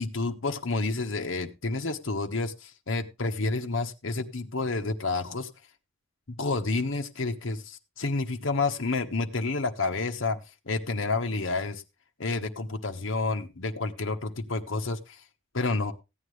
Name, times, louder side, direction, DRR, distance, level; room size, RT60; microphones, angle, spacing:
voice 1, 0.0-5.5 6.4-10.4 10.7-11.8 12.2-15.2 15.5-15.9, left 3 dB, 70° left, 5 dB, 1.2 m, -29 dB
15.5 x 9.5 x 3.3 m, 0.26 s
head